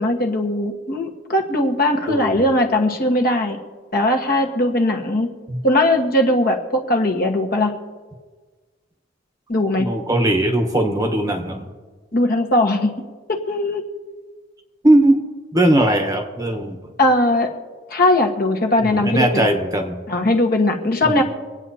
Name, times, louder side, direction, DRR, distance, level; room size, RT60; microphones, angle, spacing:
voice 1, 0.0-3.6 3.9-5.3 5.6-7.7 9.5-9.9 12.1-12.9 13.3-13.8 17.0-17.5 17.9-19.4 20.1-21.2, left 1 dB, 45° left, 2 dB, 1.4 m, -19 dB
voice 2, 2.1-2.4 5.5-5.6 9.8-11.7 14.8-15.2 15.5-16.8 18.8-20.0 21.0-21.2, right 1 dB, 15° right, 4 dB, 1.0 m, -19 dB
26.0 x 9.1 x 2.8 m, 1.4 s
head